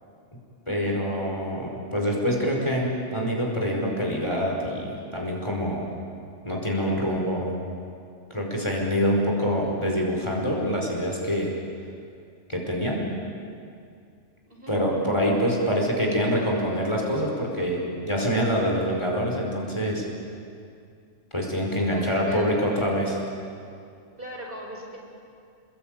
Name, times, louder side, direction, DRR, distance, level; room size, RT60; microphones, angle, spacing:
voice 1, 0.7-5.9 6.4-7.5 8.3-11.5 12.5-13.0 14.7-20.0 21.3-23.2, equal, 20° left, -1 dB, 5.1 m, -25 dB
voice 2, 21.9-22.6 24.2-25.0, equal, 40° right, -1 dB, 5.2 m, -39 dB
29.5 x 21.5 x 9.2 m, 2.4 s
omnidirectional pair, 1.4 m